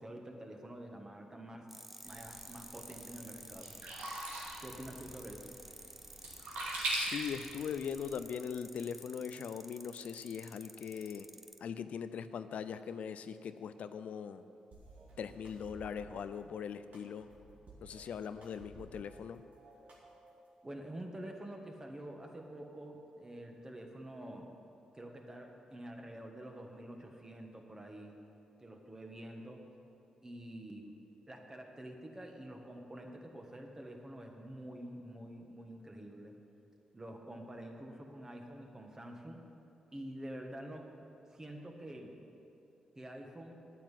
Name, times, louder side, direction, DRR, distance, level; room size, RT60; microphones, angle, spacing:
voice 1, 0.0-1.7 2.0-3.8 4.6-5.5 20.6-24.5 24.9-28.2 28.6-29.6 30.2-31.0 31.3-36.3 36.9-39.4 39.9-40.9 41.3-42.2 43.0-43.6, right 1 dB, 25° right, 2 dB, 1.7 m, -47 dB
sound 1, 1.7-11.6, right 1 dB, 10° right, 0.7 m, -52 dB
Sink (filling or washing), 2.0-8.1, right 1 dB, 90° right, 2.4 m, -42 dB
voice 2, 6.9-11.3 11.6-14.4 15.2-17.3 17.8-19.4, left 7 dB, 75° left, 11 dB, 0.4 m, -41 dB
sound 2, 14.7-16.2 16.9-19.2 19.5-20.5, right 2 dB, 70° right, 2.4 m, -56 dB
9.7 x 9.1 x 7.6 m, 2.7 s
cardioid pair, 65°, 2 cm